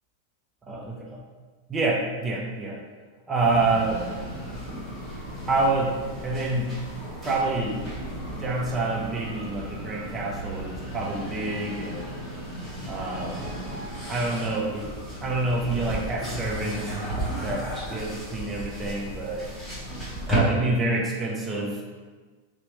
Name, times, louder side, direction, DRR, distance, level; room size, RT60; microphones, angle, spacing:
voice 1, 0.7-1.2 1.7-2.8 3.3-4.0 5.5-6.8 7.2-7.8 8.4-12.1 12.9-13.5 14.1-14.9 15.2-17.0 17.4-19.5 20.3-22.0, right 2 dB, 15° right, -1 dB, 0.4 m, -27 dB
sound 1, 3.4-20.4, right 1 dB, 5° left, 0.8 m, -34 dB
4.4 x 2.0 x 2.9 m, 1.4 s
supercardioid pair, 165°, 0 cm